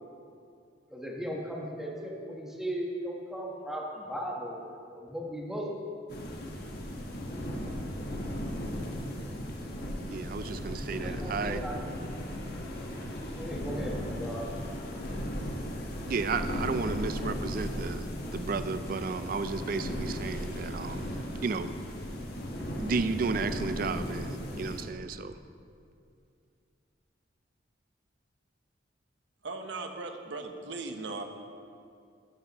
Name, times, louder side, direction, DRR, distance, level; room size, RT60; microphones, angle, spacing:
voice 1, 0.9-4.6 4.9-5.8 11.0-11.8 13.4-14.5, equal, ahead, -3 dB, 1.2 m, -37 dB
sound 1, 6.1-24.8, equal, 55° left, 1.3 m, -36 dB
voice 2, 10.1-11.6 16.1-21.1 21.4-21.7 22.8-25.4, right 4 dB, 50° right, 11 dB, 0.4 m, -33 dB
voice 3, 29.4-31.2, right 3 dB, 70° right, 5 dB, 0.9 m, -38 dB
13.0 x 9.1 x 3.0 m, 2.4 s
head